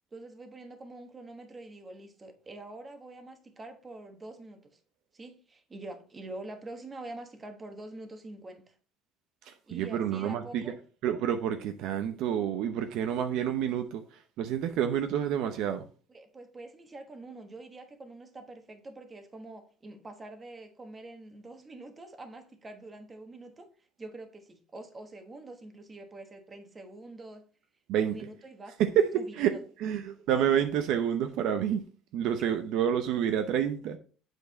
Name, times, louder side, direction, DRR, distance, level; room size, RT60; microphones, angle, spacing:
voice 1, 0.1-4.8 5.1-8.7 9.7-10.7 16.1-23.7 24.0-27.5 28.0-28.8 29.2-29.6, right 2 dB, 20° right, 1.3 m, -45 dB
voice 2, 9.5-10.7 11.0-14.0 14.4-15.9 27.9-28.1 28.9-29.1 29.3-29.5 29.8-31.8 32.1-34.0, right 9 dB, 65° right, 0.7 m, -28 dB
8.0 x 4.6 x 4.1 m
cardioid pair, 140°, 0 cm